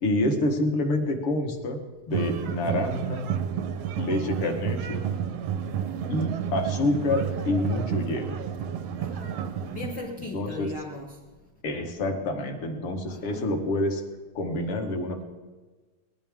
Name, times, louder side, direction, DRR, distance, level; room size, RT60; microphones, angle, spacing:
voice 1, 0.0-3.2 4.0-5.1 6.1-8.4 10.3-10.7 11.6-14.0 14.4-15.2, left 1 dB, 55° left, 1.8 m, -27 dB
sound 1, 2.1-10.0, right 8 dB, 80° right, 1.4 m, -31 dB
voice 2, 5.8-6.4 9.0-11.2 13.1-13.5, left 1 dB, 75° left, 1.0 m, -38 dB
19.5 x 12.5 x 3.6 m
omnidirectional pair, 4.0 m